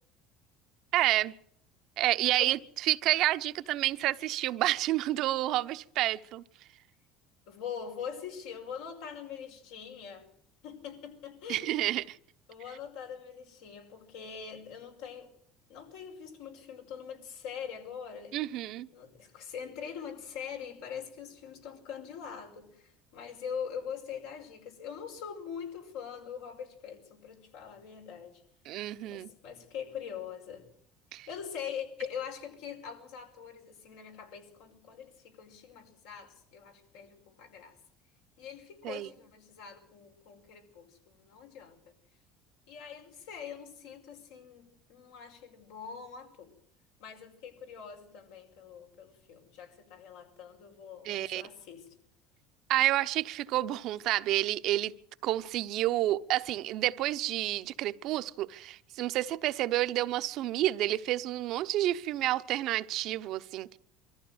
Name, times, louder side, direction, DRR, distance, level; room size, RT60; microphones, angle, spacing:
voice 1, 0.9-1.3 2.0-6.4 11.5-12.2 18.3-18.9 28.6-29.3 31.1-31.3 38.8-39.1 51.0-51.5 52.7-54.9 55.2-63.8, right 15 dB, 60° right, 0.8 m, -29 dB
voice 2, 7.5-10.3 10.6-11.9 12.5-15.3 15.7-18.4 18.9-28.4 29.0-30.7 31.3-37.7 38.4-41.8 42.7-46.5 47.0-51.9, left 7 dB, 85° left, 5.5 m, -43 dB
23.0 x 14.5 x 8.0 m
supercardioid pair, 105°, 0 cm